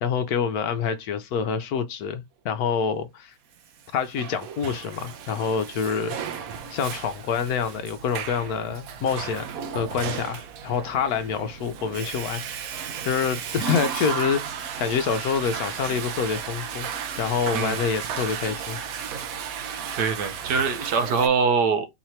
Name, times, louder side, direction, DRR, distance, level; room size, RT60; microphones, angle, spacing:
voice 1, 0.0-3.3 3.9-6.2 6.7-9.5 9.7-12.4 13.1-14.4 14.8-16.9 17.2-18.8, left 6 dB, 70° left, 1.1 m, -26 dB
Water / Toilet flush, 3.8-21.3, right 7 dB, 65° right, 1.1 m, -34 dB
voice 2, 19.9-21.9, right 5 dB, 80° right, 1.5 m, -23 dB
4.0 x 3.0 x 4.3 m
omnidirectional pair, 1.8 m